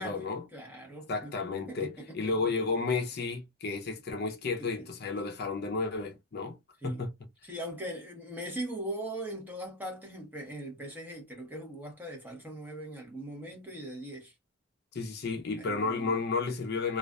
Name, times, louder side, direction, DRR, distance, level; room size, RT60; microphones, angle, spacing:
voice 1, 0.0-0.4 1.1-6.6 6.8-7.1 14.9-17.0, left 4 dB, 50° left, 0.5 m, -32 dB
voice 2, 0.5-1.3 1.7-2.3 4.6-4.7 6.8-7.0 7.4-14.3 15.6-16.1, right 1 dB, 10° right, 0.9 m, -40 dB
2.4 x 2.4 x 2.2 m
head